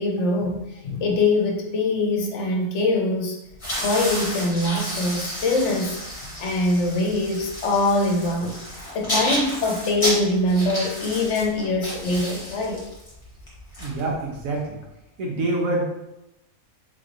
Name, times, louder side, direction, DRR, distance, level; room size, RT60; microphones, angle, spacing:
voice 1, 0.0-3.4 3.8-8.6 8.9-12.8, left 2 dB, 65° left, 1 dB, 0.9 m, -23 dB
sound 1, 3.5-14.6, equal, 25° left, 1.1 m, -31 dB
voice 2, 13.8-14.8 15.2-15.8, right 2 dB, 80° right, -1 dB, 1.3 m, -26 dB
4.0 x 3.0 x 2.6 m, 0.90 s
omnidirectional pair, 1.4 m